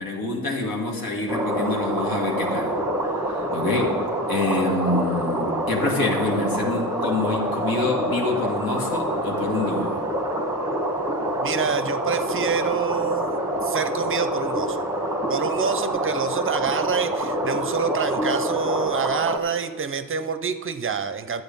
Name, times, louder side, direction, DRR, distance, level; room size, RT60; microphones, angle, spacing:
voice 1, 0.0-2.8 3.3-4.0 4.3-10.0, left 2 dB, 85° left, 1 dB, 2.2 m, -26 dB
sound 1, 1.3-19.4, right 1 dB, 10° right, 1.1 m, -26 dB
voice 2, 11.4-14.9 15.3-21.4, right 6 dB, 35° right, 11 dB, 0.5 m, -27 dB
12.0 x 7.8 x 5.3 m, 1.4 s
wide cardioid pair, 145°, 35 cm